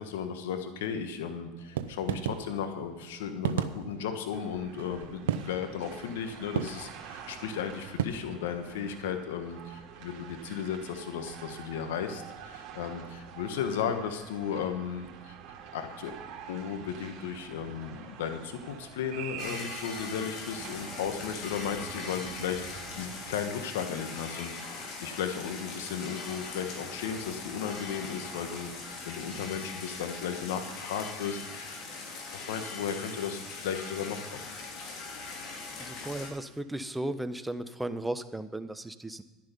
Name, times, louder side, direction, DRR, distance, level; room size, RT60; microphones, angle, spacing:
voice 1, 0.0-15.3 15.7-16.1 16.5-31.8 32.3-34.4, left 7 dB, 85° left, 7 dB, 1.3 m, -35 dB
sound 1, 1.6-8.1, right 10 dB, 90° right, 0.6 m, -34 dB
sound 2, 4.3-23.3, right 7 dB, 60° right, 2.7 m, -47 dB
sound 3, 19.4-36.3, left 3 dB, 60° left, 3.5 m, -41 dB
voice 2, 35.8-39.2, right 1 dB, 10° right, 11 dB, 0.9 m, -35 dB
11.5 x 10.5 x 5.4 m, 1.2 s
supercardioid pair, 95°, 0 cm